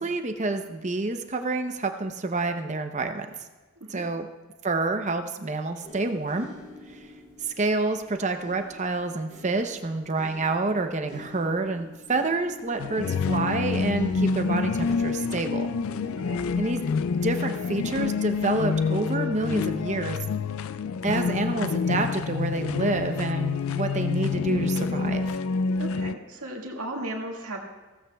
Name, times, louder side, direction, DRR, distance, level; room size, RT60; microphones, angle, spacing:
voice 1, 0.0-3.3 3.9-4.3 4.6-6.5 7.6-15.7 16.6-16.8 17.2-20.2 21.0-25.3, right 3 dB, 30° right, 6 dB, 0.7 m, -28 dB
sound 1, 5.8-18.9 19.7-19.9, left 1 dB, 30° left, 3.6 m, -48 dB
sound 2, 12.8-26.2, left 5 dB, 65° left, 0.4 m, -27 dB
voice 2, 25.8-27.6, right 1 dB, 80° right, 0 dB, 1.9 m, -35 dB
16.0 x 14.5 x 2.3 m, 1.2 s
head